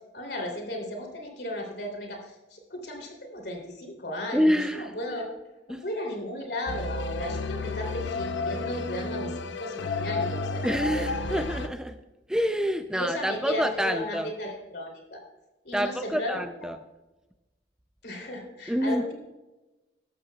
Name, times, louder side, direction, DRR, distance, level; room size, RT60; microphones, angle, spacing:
voice 1, 0.1-5.2 5.7-11.4 12.9-15.2 15.6-16.5 18.0-19.1, left 1 dB, 60° left, 2 dB, 3.0 m, -35 dB
voice 2, 4.3-4.9 5.7-5.8 10.6-11.9 12.3-14.3 15.7-16.8 18.7-19.0, equal, 5° right, 8 dB, 0.4 m, -27 dB
sound 1, 6.7-11.7, left 3 dB, 85° left, 0.7 m, -32 dB
14.0 x 12.0 x 2.3 m, 1.1 s
head